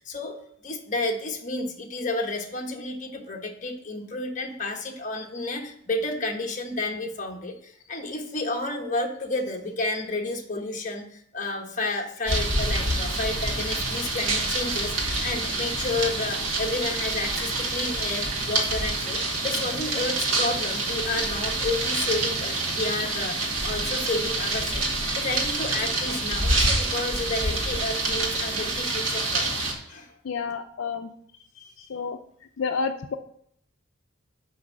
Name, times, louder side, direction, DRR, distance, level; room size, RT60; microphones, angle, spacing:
voice 1, 0.0-24.9 25.1-30.1, left 2 dB, 40° left, 1 dB, 1.3 m, -31 dB
sound 1, 12.3-29.7, right 2 dB, 85° right, 2.0 m, -27 dB
voice 2, 30.2-31.1 31.6-32.2 32.6-33.2, left 5 dB, 80° left, 7 dB, 0.5 m, -30 dB
6.4 x 5.4 x 7.1 m, 0.66 s
head